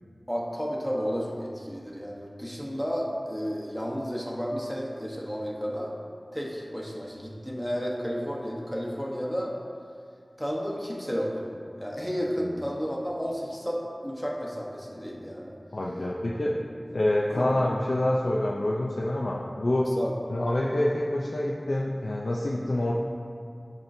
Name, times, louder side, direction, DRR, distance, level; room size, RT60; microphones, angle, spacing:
voice 1, 0.3-5.9 6.3-9.5 10.4-15.5 17.3-17.5 20.0-20.1, equal, ahead, -3 dB, 0.9 m, -32 dB
voice 2, 15.7-16.5 16.9-19.9 20.3-22.9, left 1 dB, 70° left, -3 dB, 0.4 m, -27 dB
10.5 x 4.4 x 2.6 m, 2.3 s
wide cardioid pair, 60°, 0 cm